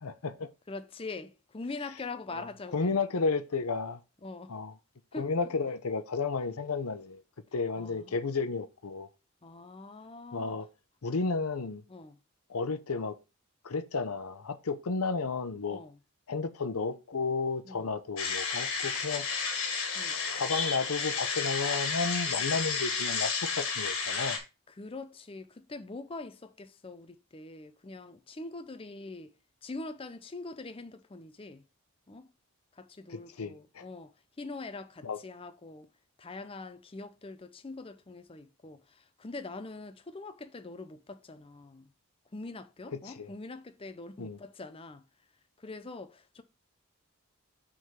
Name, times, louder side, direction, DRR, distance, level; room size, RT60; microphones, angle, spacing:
voice 1, 0.0-0.5 2.3-2.4 2.7-4.0 4.5-4.7 5.2-7.2 7.5-9.1 10.3-10.7 11.0-11.8 12.5-13.2 13.6-15.8 16.3-19.3 20.3-24.4 33.1-33.8 35.0-35.2 43.1-43.3 44.2-44.4, left 4 dB, 80° left, 0.7 m, -32 dB
voice 2, 0.7-3.0 4.2-4.5 5.1-5.3 7.8-8.2 9.4-10.6 11.9-12.2 15.7-16.0 17.7-17.9 19.9-20.2 24.7-29.3 29.6-31.6 32.1-32.3 32.8-34.1 34.4-35.9 36.2-41.9 42.3-45.0 45.6-46.4, left 3 dB, 25° left, 0.5 m, -43 dB
sound 1, 18.2-24.4, left 5 dB, 60° left, 1.9 m, -32 dB
6.2 x 3.7 x 5.7 m
head